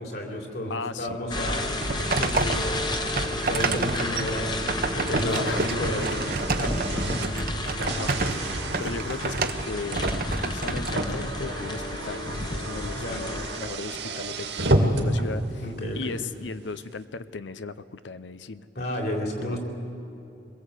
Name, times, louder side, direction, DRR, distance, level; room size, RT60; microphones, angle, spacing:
voice 1, 0.0-1.7 2.2-7.2 12.9-13.2 15.6-16.1 18.8-19.6, left 1 dB, 55° left, 1 dB, 3.7 m, -32 dB
voice 2, 0.7-1.2 5.3-5.7 7.9-18.7 19.2-19.6, left 4 dB, 75° left, 13 dB, 0.6 m, -37 dB
sound 1, 1.3-13.6, left 1 dB, 25° left, 1.3 m, -32 dB
sound 2, 1.5-11.7, right 3 dB, 50° right, 1.1 m, -30 dB
Car, 4.6-15.2, right 1 dB, 70° right, 2.4 m, -30 dB
25.0 x 21.5 x 8.3 m, 2.8 s
head